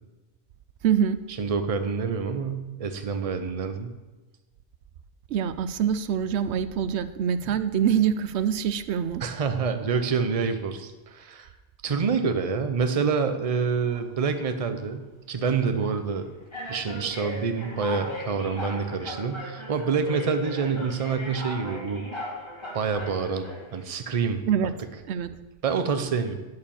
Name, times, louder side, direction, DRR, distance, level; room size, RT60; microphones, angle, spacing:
voice 1, 0.8-1.2 5.3-9.2 24.5-24.7 25.1-25.3, right 8 dB, 85° right, 13 dB, 0.9 m, -25 dB
voice 2, 1.4-3.9 7.4-7.5 9.2-11.5 11.8-15.0 15.3-16.3 16.7-22.0 22.7-24.4 25.6-26.3, right 5 dB, 35° right, 8 dB, 0.8 m, -27 dB
sound 1, 13.5-14.0 14.8-15.0 15.8-15.9 16.5-23.8, equal, 25° left, 2.1 m, -38 dB
11.0 x 4.8 x 7.2 m, 1.2 s
omnidirectional pair, 1.1 m